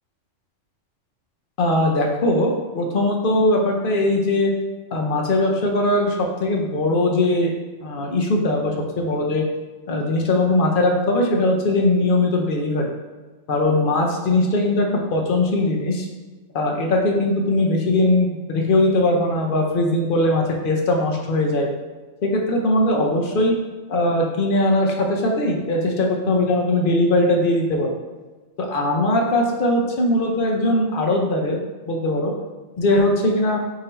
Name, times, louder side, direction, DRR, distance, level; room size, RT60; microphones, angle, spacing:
voice 1, 1.6-4.5 4.9-7.5 7.8-9.4 9.9-12.8 13.5-16.1 16.5-21.7 22.2-23.5 23.9-27.9 28.6-31.6 31.9-32.3 32.8-33.6, left 1 dB, 55° left, 0 dB, 0.7 m, -20 dB
3.8 x 2.7 x 4.2 m, 1.3 s
omnidirectional pair, 1.3 m